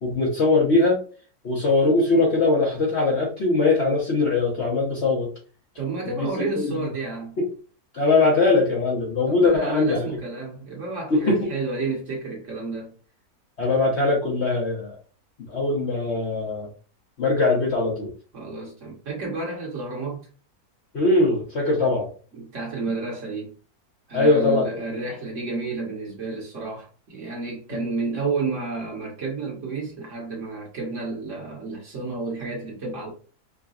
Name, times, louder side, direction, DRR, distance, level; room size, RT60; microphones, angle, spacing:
voice 1, 0.0-1.0 1.4-5.3 6.2-6.9 7.4-7.5 7.9-10.1 11.1-11.4 13.6-15.0 15.5-16.7 17.2-18.1 20.9-22.1 24.1-24.7 27.7-27.9, left 3 dB, 50° left, 0.9 m, -21 dB
voice 2, 5.8-7.4 9.3-12.9 18.3-20.3 22.3-23.5 24.1-33.1, right 3 dB, 50° right, 1.5 m, -31 dB
4.9 x 2.3 x 2.4 m
omnidirectional pair, 1.9 m